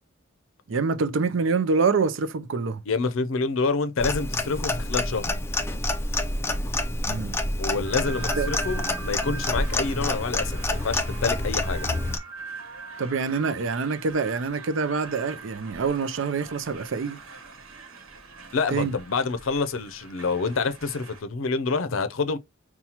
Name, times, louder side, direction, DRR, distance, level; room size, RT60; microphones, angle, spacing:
voice 1, 0.7-2.8 7.1-7.3 8.4-8.5 13.0-17.2 18.7-18.9, right 4 dB, 70° right, 0.5 m, -26 dB
voice 2, 2.9-5.3 7.6-11.9 18.5-22.4, left 4 dB, 75° left, 0.5 m, -27 dB
Clock, 4.0-12.2, left 2 dB, 10° left, 0.4 m, -28 dB
sound 1, 7.8-21.2, right 4 dB, 90° right, 1.1 m, -42 dB
5.5 x 2.3 x 2.8 m
head